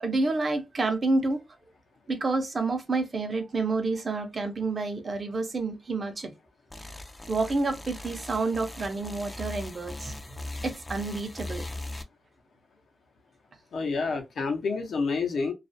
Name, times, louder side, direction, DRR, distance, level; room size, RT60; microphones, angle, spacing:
voice 1, 0.0-1.4 2.1-6.3 7.3-10.1 10.6-11.6, right 3 dB, 45° right, 0.6 m, -29 dB
sound 1, 6.7-12.0, left 2 dB, 20° left, 0.4 m, -39 dB
voice 2, 13.7-15.5, left 4 dB, 80° left, 0.7 m, -28 dB
2.4 x 2.0 x 2.5 m
cardioid pair, 85°, 0 cm